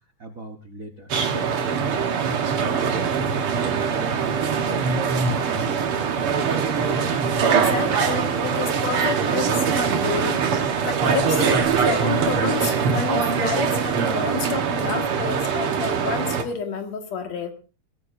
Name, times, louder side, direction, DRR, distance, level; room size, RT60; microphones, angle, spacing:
voice 1, 0.2-1.5 1.9-6.8, right 4 dB, 70° right, 5 dB, 0.7 m, -36 dB
sound 1, 1.1-16.4, right 6 dB, 55° right, 1.9 m, -23 dB
voice 2, 7.4-10.4 10.8-17.5, left 5 dB, 60° left, 5 dB, 2.9 m, -29 dB
22.5 x 17.0 x 2.6 m, 0.34 s
omnidirectional pair, 3.6 m